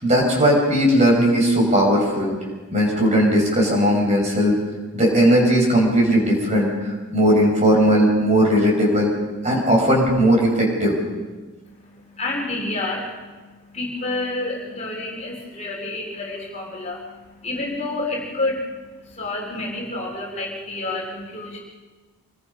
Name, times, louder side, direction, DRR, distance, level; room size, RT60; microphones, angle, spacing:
voice 1, 0.0-2.3 2.7-4.6 4.9-9.1 9.4-11.0, equal, 30° right, 0 dB, 5.6 m, -18 dB
voice 2, 11.6-21.6, left 2 dB, 30° left, -1 dB, 3.5 m, -29 dB
25.5 x 22.0 x 5.5 m, 1.3 s
head